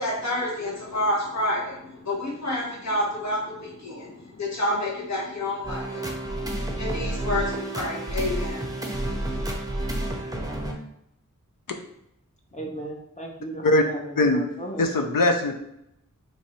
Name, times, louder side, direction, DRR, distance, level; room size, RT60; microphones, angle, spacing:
voice 1, 0.0-9.2, left 1 dB, 60° left, -5 dB, 1.0 m, -29 dB
sound 1, 5.6-10.7, right 1 dB, 10° right, 0.6 m, -30 dB
voice 2, 12.5-14.0 14.3-14.8, right 1 dB, 20° left, 0 dB, 0.8 m, -36 dB
voice 3, 14.8-15.5, left 2 dB, 85° left, 5 dB, 0.5 m, -21 dB
3.1 x 2.6 x 4.3 m, 0.79 s
wide cardioid pair, 55°, 32 cm